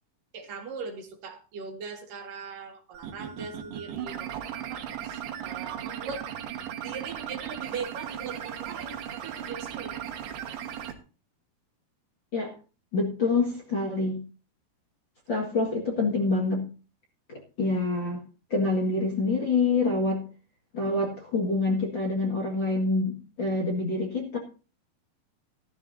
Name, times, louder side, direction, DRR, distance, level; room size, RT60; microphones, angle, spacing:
voice 1, 0.3-6.2 6.8-10.1, right 5 dB, 65° right, 4 dB, 3.1 m, -40 dB
sound 1, 2.9-10.9, right 10 dB, 90° right, 3.4 m, -37 dB
voice 2, 12.9-14.2 15.3-16.6 17.3-18.2 18.5-20.2 20.7-24.4, left 3 dB, 40° left, 0 dB, 1.9 m, -26 dB
14.5 x 13.5 x 2.7 m, 0.34 s
omnidirectional pair, 4.5 m